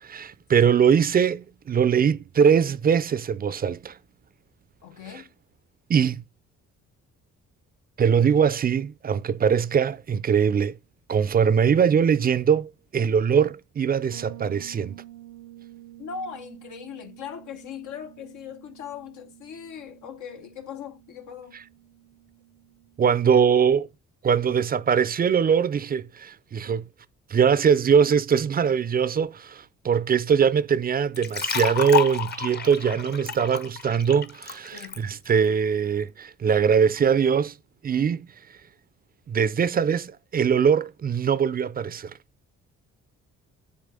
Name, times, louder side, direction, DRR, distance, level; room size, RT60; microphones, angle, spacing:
voice 1, 0.0-4.0 5.9-6.2 8.0-10.8 11.1-14.9 23.0-23.9 24.2-26.9 27.3-37.5 37.8-38.3 39.3-42.1, right 7 dB, 30° right, 0.4 m, -22 dB
voice 2, 4.8-5.3 16.0-21.6 34.7-35.1, left 7 dB, 75° left, 0.9 m, -39 dB
Bass guitar, 14.1-23.8, right 14 dB, 75° right, 0.7 m, -49 dB
sound 1, 31.1-35.0, left 7 dB, 35° left, 0.8 m, -30 dB
9.6 x 3.7 x 3.7 m
cardioid pair, 90°, 30 cm